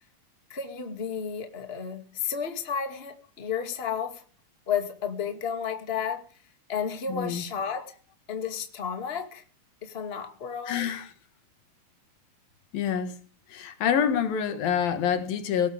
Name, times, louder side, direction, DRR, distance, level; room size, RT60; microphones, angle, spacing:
voice 1, 0.5-4.2 4.7-6.3 6.7-7.9 8.3-9.4 9.8-10.8, left 7 dB, 20° left, 2.0 m, -32 dB
voice 2, 7.1-7.5 10.7-11.1 12.7-13.2 13.5-15.7, left 8 dB, 80° left, 3.6 m, -26 dB
19.0 x 18.5 x 3.6 m
omnidirectional pair, 4.1 m